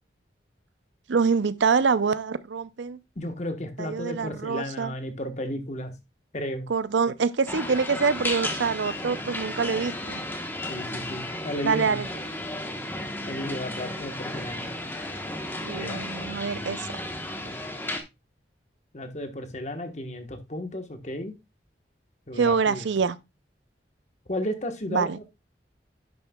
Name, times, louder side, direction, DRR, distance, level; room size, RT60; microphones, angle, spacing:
voice 1, 1.1-3.0 3.8-4.9 6.7-10.2 11.6-12.1 15.6-16.9 22.3-23.2 24.9-25.2, right 5 dB, 90° right, 0.5 m, -25 dB
voice 2, 3.2-5.9 6.3-6.7 10.7-12.0 13.3-14.7 15.8-16.1 16.5-16.8 17.4-17.5 18.9-21.3 22.3-22.8 24.3-25.3, left 1 dB, 40° left, 1.2 m, -34 dB
sound 1, 7.5-18.0, left 1 dB, 10° left, 1.1 m, -34 dB
10.5 x 6.5 x 2.3 m
head